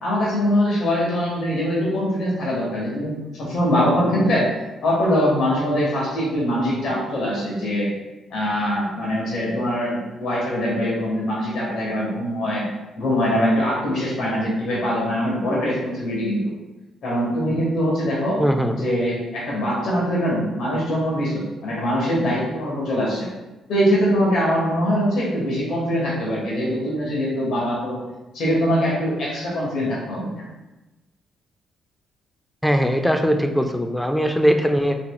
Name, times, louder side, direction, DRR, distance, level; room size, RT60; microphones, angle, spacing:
voice 1, 0.0-4.5 4.8-7.9 8.3-12.7 13.0-16.5 17.0-18.4 18.8-23.3 23.7-28.0 28.3-30.5, equal, 70° left, -6 dB, 1.4 m, -22 dB
voice 2, 18.4-18.8 32.6-35.0, equal, 5° left, 6 dB, 0.4 m, -20 dB
4.2 x 4.0 x 2.3 m, 1.0 s
cardioid pair, 90°, 0 cm